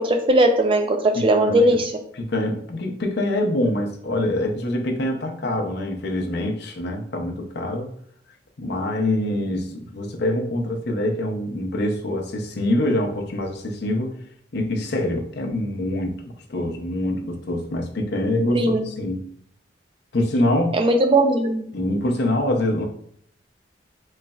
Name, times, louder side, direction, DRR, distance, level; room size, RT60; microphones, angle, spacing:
voice 1, 0.0-1.9 18.5-18.9 20.7-21.7, right 1 dB, 30° right, 5 dB, 0.4 m, -18 dB
voice 2, 1.1-1.8 2.2-7.9 8.6-14.2 14.5-16.2 16.5-19.2 20.1-20.8 21.7-22.8, left 1 dB, 60° left, 2 dB, 0.6 m, -25 dB
3.9 x 3.1 x 2.3 m, 0.65 s
head